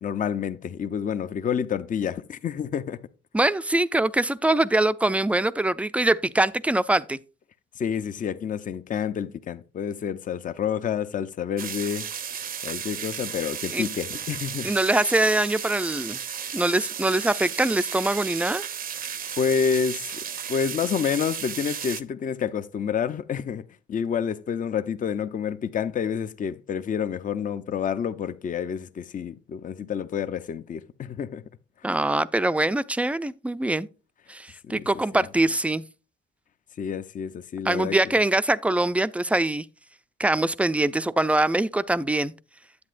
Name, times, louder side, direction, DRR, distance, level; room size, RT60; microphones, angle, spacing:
voice 1, 0.0-3.0 7.8-14.7 19.4-20.2 20.5-23.6 23.9-31.4 34.7-34.8 36.8-38.0, left 7 dB, 40° left, 0.6 m, -28 dB
voice 2, 3.3-7.2 13.7-13.9 14.6-16.2 16.5-18.6 31.8-33.9 34.3-35.8 37.6-39.6 40.2-42.3, right 2 dB, 5° right, 0.4 m, -23 dB
sound 1, 11.6-22.0, right 8 dB, 45° right, 0.6 m, -34 dB
9.7 x 8.1 x 2.5 m
cardioid pair, 90°, 20 cm